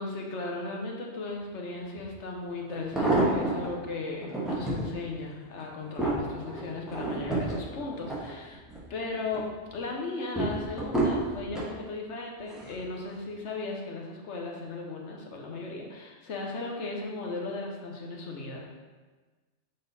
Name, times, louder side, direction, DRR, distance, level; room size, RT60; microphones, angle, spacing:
voice 1, 0.0-8.6 8.9-18.7, left 3 dB, 75° left, 0 dB, 1.3 m, -36 dB
sound 1, 2.0-2.1 2.7-3.7 4.2-4.9 5.4-8.8 9.2-9.7 10.4-11.7 12.5-12.8 13.1-13.2, right 2 dB, ahead, 1.3 m, -29 dB
6.8 x 3.8 x 4.1 m, 1.3 s
omnidirectional pair, 1.2 m